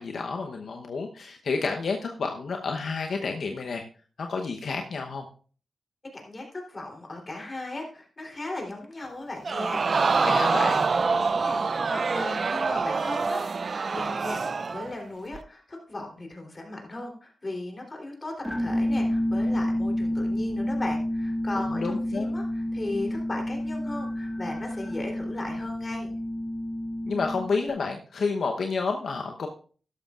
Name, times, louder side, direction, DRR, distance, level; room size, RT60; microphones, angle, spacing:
voice 1, 0.0-3.8 4.2-5.3 10.2-10.9 21.7-22.3 27.1-29.5, left 4 dB, 70° left, 2 dB, 0.9 m, -30 dB
voice 2, 6.1-14.4 14.7-26.1, left 2 dB, 35° left, 1 dB, 3.4 m, -37 dB
Crowd, 9.4-14.9 15.3-15.4, right 4 dB, 55° right, 0.4 m, -25 dB
sound 1, 18.4-27.7, left 1 dB, 5° left, 1.5 m, -29 dB
13.0 x 11.5 x 2.5 m, 0.40 s
cardioid pair, 70°, 0 cm